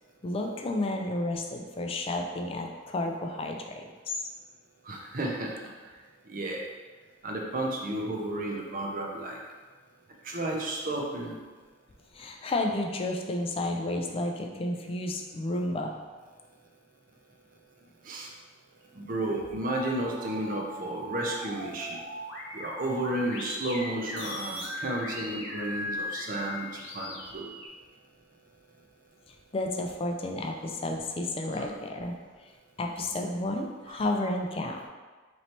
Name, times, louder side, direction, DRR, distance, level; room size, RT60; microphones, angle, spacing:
voice 1, 0.2-4.2 12.1-16.0 29.5-32.1 32.8-34.9, left 2 dB, 30° left, 2 dB, 0.4 m, -31 dB
voice 2, 4.9-5.5 6.3-6.6 7.2-9.4 10.2-11.3 18.1-18.3 19.0-22.0 22.5-26.7 26.9-27.5 31.6-31.7, right 1 dB, 45° right, 0 dB, 0.6 m, -32 dB
sound 1, 19.2-27.7, equal, 80° left, 0.9 m, -39 dB
3.1 x 2.8 x 4.3 m, 1.4 s
head